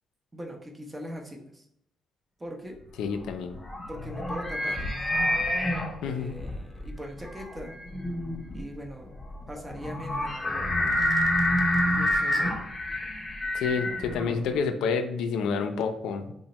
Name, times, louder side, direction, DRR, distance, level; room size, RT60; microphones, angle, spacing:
voice 1, 0.3-1.6 2.4-2.8 3.9-4.9 6.0-7.8 8.5-9.1 9.5-10.7 11.9-12.5, equal, 20° right, 2 dB, 0.6 m, -40 dB
voice 2, 3.0-3.6 6.0-6.3 13.5-16.3, left 5 dB, 85° left, 6 dB, 0.3 m, -29 dB
sound 1, 3.1-14.6, left 1 dB, 20° left, 0.7 m, -28 dB
2.9 x 2.0 x 4.0 m, 0.75 s
cardioid pair, 90°, 0 cm